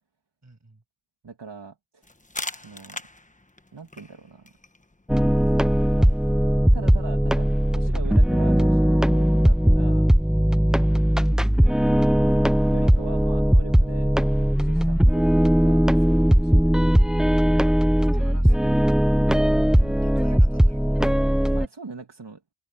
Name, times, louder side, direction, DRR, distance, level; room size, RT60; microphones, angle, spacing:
voice 1, 0.4-0.8 10.7-11.0 18.1-18.9 20.0-21.1, right 2 dB, 35° right, 6.8 m, -50 dB
voice 2, 1.2-2.1 2.5-3.0 3.7-4.5 5.5-6.2 6.7-10.1 12.2-12.4 12.7-16.6 16.9-17.1 19.8-20.4 21.5-22.4, right 4 dB, 60° right, 2.7 m, -42 dB
sound 1, 2.0-7.5, left 2 dB, 15° left, 1.3 m, -42 dB
sound 2, 5.1-21.7, equal, ahead, 0.4 m, -19 dB
cardioid pair, 55°, 48 cm